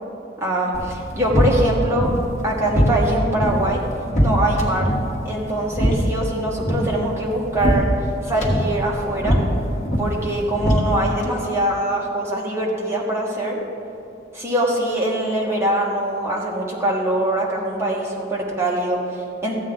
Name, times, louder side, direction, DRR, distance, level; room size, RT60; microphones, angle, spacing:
voice 1, 0.4-2.1 2.4-3.8 4.2-4.9 5.2-7.9 8.2-9.4 10.0-13.6 14.3-19.6, right 1 dB, 15° right, -3 dB, 1.4 m, -23 dB
sound 1, 0.7-11.3, equal, 40° left, 1.4 m, -23 dB
14.0 x 8.3 x 3.7 m, 2.7 s
head